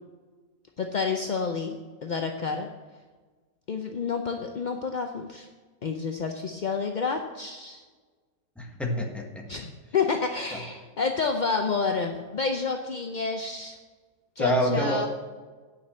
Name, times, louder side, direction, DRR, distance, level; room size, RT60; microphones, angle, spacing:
voice 1, 0.8-2.7 3.7-5.5 5.8-7.8 9.5-13.8 14.4-15.1, left 5 dB, 60° left, 4 dB, 0.5 m, -29 dB
voice 2, 8.6-9.4 14.4-15.1, equal, ahead, 0 dB, 1.4 m, -26 dB
9.5 x 5.8 x 7.4 m, 1.4 s
omnidirectional pair, 1.6 m